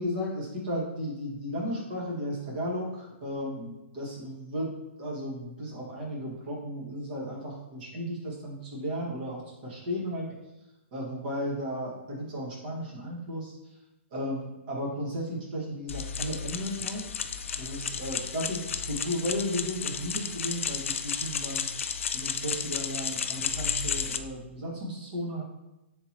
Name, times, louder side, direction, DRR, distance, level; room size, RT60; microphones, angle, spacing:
voice 1, 0.0-4.7 5.0-10.3 10.9-13.5 14.1-17.0 17.6-21.7 22.1-25.4, equal, 45° right, -3 dB, 1.3 m, -34 dB
sound 1, 15.9-24.2, left 6 dB, 85° left, 0.3 m, -33 dB
3.7 x 2.9 x 4.2 m, 0.96 s
hypercardioid pair, 150°, 7 cm